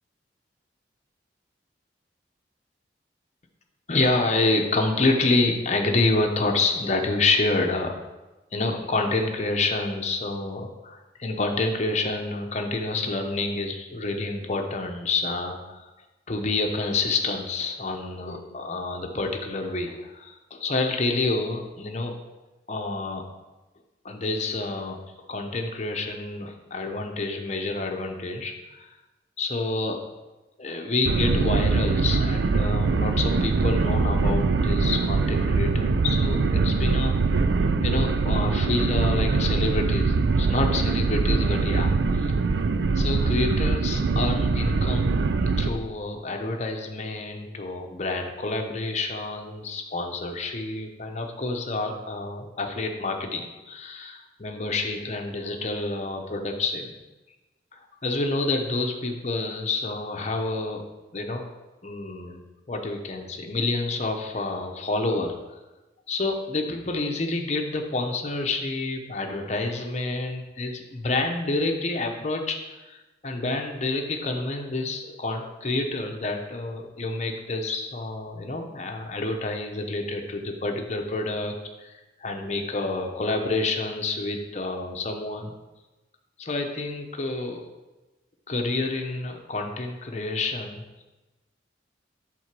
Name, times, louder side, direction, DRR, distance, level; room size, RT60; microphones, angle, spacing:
voice 1, 3.9-7.9 8.5-15.8 16.3-22.1 22.7-23.3 24.0-28.9 29.4-30.0 30.6-37.2 37.8-42.4 42.9-56.9 57.7-60.8 61.1-61.4 61.8-65.3 66.1-72.6 72.9-81.6 81.8-85.5 86.4-87.6 88.5-90.8, left 2 dB, 40° left, 3 dB, 0.8 m, -28 dB
sound 1, 31.1-45.7, right 4 dB, 70° right, 0.4 m, -23 dB
7.8 x 3.8 x 6.0 m, 1.1 s
head